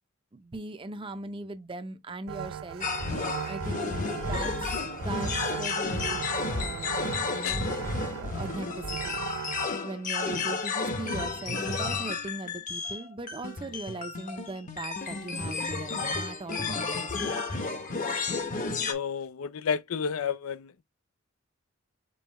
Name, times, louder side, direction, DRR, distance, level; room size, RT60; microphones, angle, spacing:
voice 1, 0.3-2.9 3.2-3.9 4.2-7.0 7.3-7.7 8.2-9.3 9.8-17.4, right 2 dB, 25° right, 0.6 m, -40 dB
sound 1, 2.3-9.7, right 8 dB, 70° right, 0.3 m, -38 dB
sound 2, 2.8-18.9, left 4 dB, 40° left, 0.8 m, -32 dB
voice 2, 18.9-20.8, left 6 dB, 85° left, 0.4 m, -31 dB
5.4 x 2.3 x 4.2 m
head